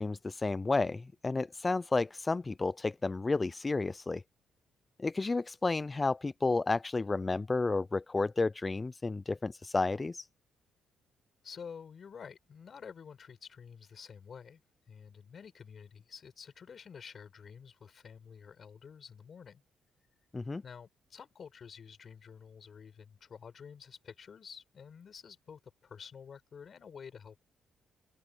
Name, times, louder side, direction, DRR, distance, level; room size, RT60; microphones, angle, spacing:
voice 1, 0.0-4.2 5.0-10.3 20.3-20.6, left 3 dB, 25° left, 0.4 m, -31 dB
voice 2, 11.4-14.6 14.9-19.6 20.6-27.4, left 6 dB, 50° left, 5.1 m, -50 dB
open air
cardioid pair, 90°, 0 cm